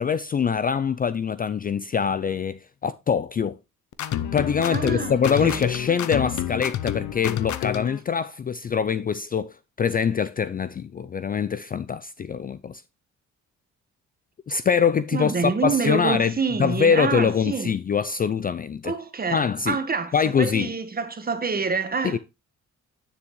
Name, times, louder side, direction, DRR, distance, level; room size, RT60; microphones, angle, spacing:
voice 1, 0.0-3.6 4.3-12.8 14.5-16.3 16.6-18.9 19.3-19.8 20.1-20.7 22.0-22.2, left 6 dB, 30° left, 0.4 m, -24 dB
sound 1, 3.9-8.0, left 11 dB, 70° left, 0.7 m, -29 dB
voice 2, 4.7-5.7 15.1-17.7 18.8-22.2, right 5 dB, 30° right, 1.5 m, -27 dB
9.2 x 7.1 x 3.1 m
cardioid pair, 90°, 30 cm